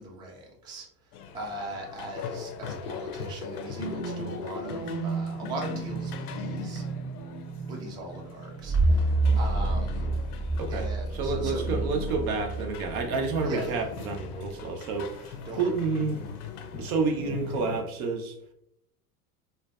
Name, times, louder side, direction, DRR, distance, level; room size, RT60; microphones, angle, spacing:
voice 1, 0.0-6.8 7.7-10.1 10.7-11.7 13.4-13.8 15.5-15.7, right 1 dB, 10° right, -1 dB, 0.3 m, -40 dB
sound 1, 1.1-17.8, left 7 dB, 75° left, 0.5 m, -40 dB
sound 2, 3.8-14.2 14.6-14.7, right 2 dB, 30° right, 0.7 m, -30 dB
voice 2, 11.1-16.2 16.7-18.4, right 4 dB, 70° right, 3 dB, 0.7 m, -29 dB
2.5 x 2.2 x 2.3 m, 0.73 s
hypercardioid pair, 90°, 46 cm